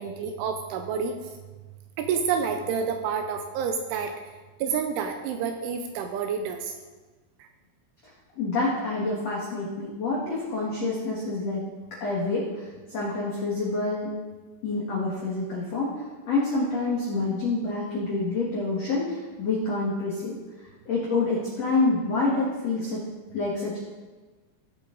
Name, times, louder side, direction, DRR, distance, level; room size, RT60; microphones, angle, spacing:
voice 1, 0.0-1.3 2.0-4.1 4.6-6.7 7.4-7.5, right 6 dB, 80° right, 5 dB, 2.8 m, -29 dB
voice 2, 8.3-11.6 12.0-14.2 14.6-20.3 20.8-23.0 23.3-23.8, left 3 dB, 85° left, -5 dB, 1.4 m, -27 dB
16.0 x 7.0 x 3.9 m, 1.3 s
omnidirectional pair, 5.9 m